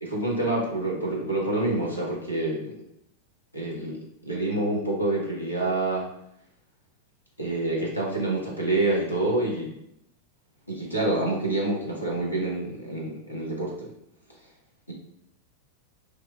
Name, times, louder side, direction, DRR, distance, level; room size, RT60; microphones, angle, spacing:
voice 1, 0.0-2.8 3.5-4.0 4.2-6.1 7.4-9.7 10.7-13.9, right 2 dB, 85° left, -3 dB, 0.7 m, -27 dB
2.9 x 2.1 x 2.3 m, 0.76 s
figure-of-eight pair, 90°, 0 cm